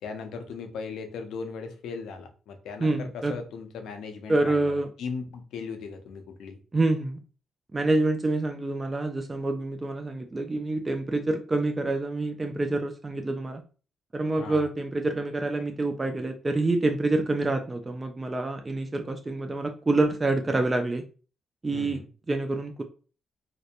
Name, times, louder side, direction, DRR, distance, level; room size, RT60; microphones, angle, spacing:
voice 1, 0.0-6.6 14.4-14.7 21.7-22.1, left 5 dB, 85° left, 6 dB, 0.4 m, -38 dB
voice 2, 2.8-3.3 4.3-4.9 6.7-7.2 7.7-13.6 14.1-21.0 21.6-22.0 22.3-22.8, right 2 dB, 25° right, 5 dB, 0.3 m, -27 dB
2.8 x 2.1 x 2.4 m, 0.37 s
cardioid pair, 90°, 0 cm